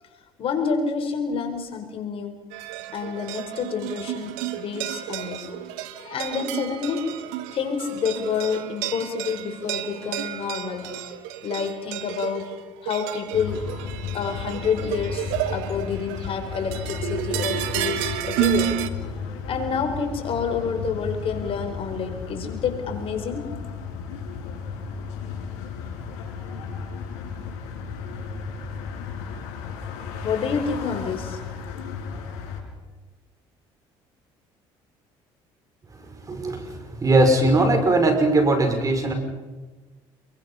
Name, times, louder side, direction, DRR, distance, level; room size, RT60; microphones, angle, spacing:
voice 1, 0.4-2.4 2.9-5.5 6.0-7.1 7.5-11.1 11.4-12.5 12.8-13.6 14.1-18.8 19.5-23.5 30.2-31.4, left 6 dB, 55° left, 5 dB, 4.6 m, -28 dB
sound 1, 2.5-18.9, right 12 dB, 85° right, 1.5 m, -31 dB
sound 2, 13.3-32.6, left 6 dB, 80° left, 6.3 m, -34 dB
voice 2, 36.2-39.1, right 2 dB, 30° right, 5 dB, 5.7 m, -20 dB
28.0 x 23.0 x 5.8 m, 1.2 s
supercardioid pair, 85°, 11 cm